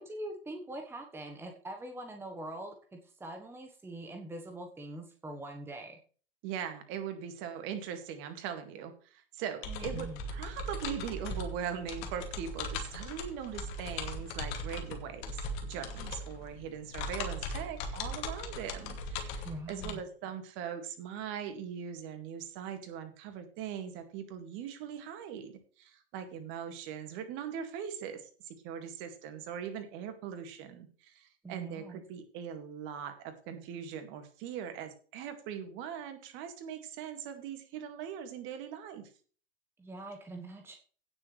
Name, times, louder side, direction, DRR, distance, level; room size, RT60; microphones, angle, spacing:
voice 1, 0.0-6.0 9.7-10.2 19.4-20.0 31.4-32.0 39.8-40.8, right 1 dB, 10° right, 4 dB, 1.3 m, -43 dB
voice 2, 6.4-39.0, right 8 dB, 40° right, 8 dB, 2.1 m, -41 dB
sound 1, 9.6-19.9, left 2 dB, 45° left, 2.5 m, -39 dB
16.5 x 6.9 x 3.3 m, 0.41 s
figure-of-eight pair, 95°, 29 cm